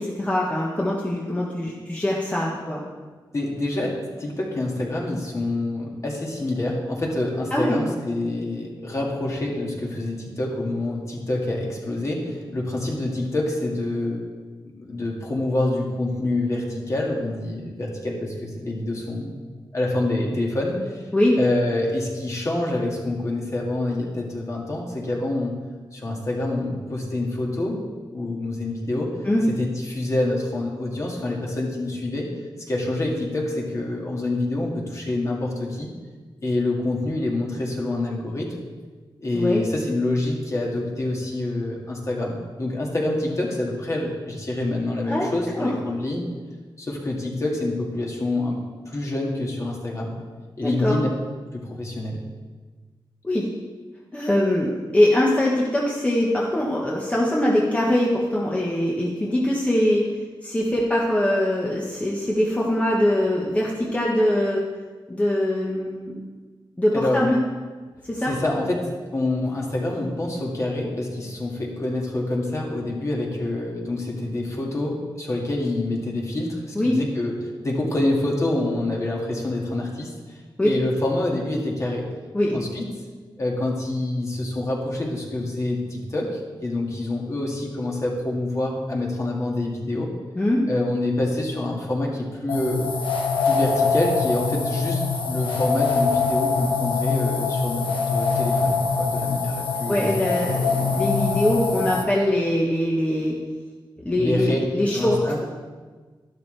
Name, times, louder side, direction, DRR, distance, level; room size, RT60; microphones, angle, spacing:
voice 1, 0.0-2.8 7.5-7.8 21.1-21.4 29.2-29.4 39.3-39.7 45.1-45.3 45.5-45.7 50.6-50.9 53.2-53.5 54.1-60.0 60.4-64.6 65.1-66.1 66.8-67.4 68.1-68.3 76.7-77.0 80.6-80.7 82.3-82.6 90.4-90.6 99.9-103.3 104.0-105.4, left 1 dB, 15° left, -4 dB, 1.3 m, -22 dB
voice 2, 3.3-14.2 14.8-19.3 19.7-21.1 21.4-25.6 25.9-27.8 28.1-29.1 29.5-32.3 32.7-35.9 36.4-38.5 39.2-46.3 46.8-50.2 50.6-51.1 51.5-52.2 66.9-67.2 68.2-68.8 69.1-77.3 77.6-80.1 80.6-82.1 82.5-82.8 83.4-90.1 90.7-92.8 93.4-100.5 104.2-104.6 104.9-105.4, left 2 dB, 35° left, -2 dB, 2.1 m, -26 dB
sound 1, 92.5-102.0, left 4 dB, 75° left, 1.3 m, -23 dB
12.0 x 12.0 x 3.4 m, 1.4 s
wide cardioid pair, 145°, 9 cm